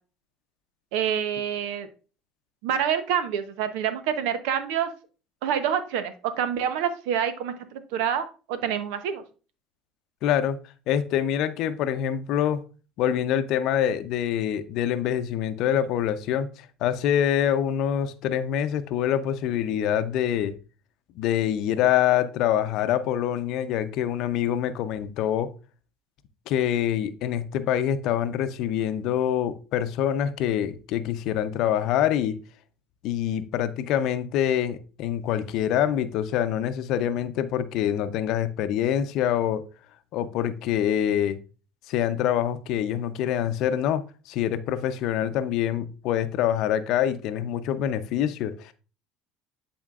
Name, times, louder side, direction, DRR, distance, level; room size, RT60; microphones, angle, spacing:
voice 1, 0.9-1.9 2.6-4.9 5.4-9.2, right 8 dB, 75° right, 11 dB, 0.8 m, -27 dB
voice 2, 10.2-10.6 10.9-12.6 13.0-16.5 16.8-20.5 21.2-25.5 26.5-32.4 33.0-39.6 40.1-41.4 41.9-48.7, left 10 dB, 65° left, 11 dB, 0.6 m, -25 dB
10.5 x 4.4 x 2.4 m, 0.36 s
supercardioid pair, 90°, 0 cm